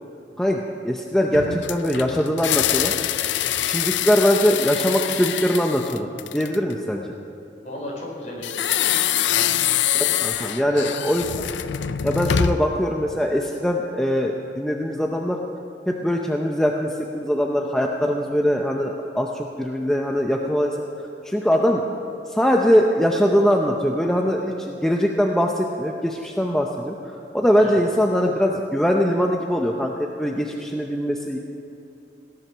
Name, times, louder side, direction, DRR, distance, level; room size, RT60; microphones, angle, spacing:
voice 1, 0.4-2.9 3.6-7.1 9.9-11.5 12.0-15.4 15.9-20.9 21.2-21.8 22.3-31.4, equal, 5° left, 1 dB, 0.6 m, -22 dB
sound 1, 1.3-6.7 8.4-12.8, left 10 dB, 75° left, 0.5 m, -24 dB
voice 2, 7.6-9.5 10.3-10.7 27.6-27.8, left 1 dB, 40° left, -3 dB, 4.5 m, -36 dB
18.0 x 11.0 x 6.1 m, 2.9 s
head